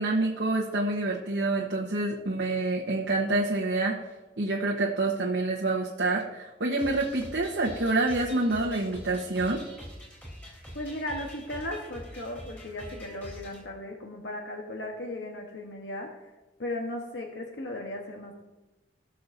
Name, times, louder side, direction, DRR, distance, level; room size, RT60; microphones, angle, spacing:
voice 1, 0.0-3.9 4.4-9.6, right 2 dB, 75° right, -3 dB, 1.2 m, -27 dB
sound 1, 6.8-13.6, equal, 10° left, 3.5 m, -45 dB
voice 2, 10.7-16.1 16.6-18.4, left 1 dB, 70° left, 1 dB, 1.2 m, -36 dB
18.0 x 6.6 x 2.7 m, 1.1 s
head